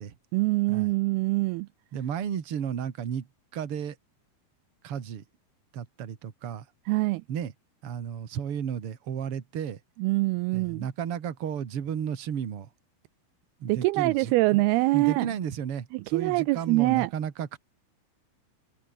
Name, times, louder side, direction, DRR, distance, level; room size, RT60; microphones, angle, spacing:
voice 1, 0.3-1.7 6.9-7.2 10.0-10.9 13.7-15.3 15.9-17.1, right 21 dB, 80° right, 2.4 m, -24 dB
voice 2, 1.9-3.3 3.5-4.0 4.8-5.2 5.7-6.6 7.3-7.5 7.8-9.8 10.5-12.7 13.6-14.6 14.9-17.6, right 8 dB, 45° right, 2.3 m, -33 dB
omnidirectional pair, 4.6 m